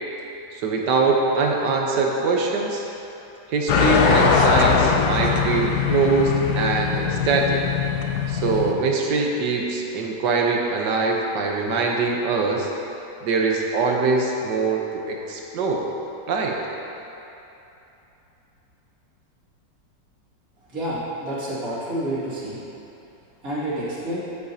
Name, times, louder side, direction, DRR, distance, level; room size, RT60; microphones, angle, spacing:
voice 1, 0.5-2.8 3.5-7.6 8.3-12.7 13.2-15.8 16.3-16.6, right 3 dB, 75° right, 0 dB, 1.6 m, -23 dB
sound 1, 3.7-8.7, left 5 dB, 70° left, 1.1 m, -21 dB
voice 2, 20.7-22.6 23.4-24.2, right 1 dB, 55° right, -10 dB, 2.7 m, -28 dB
13.0 x 7.4 x 2.8 m, 2.9 s
omnidirectional pair, 1.9 m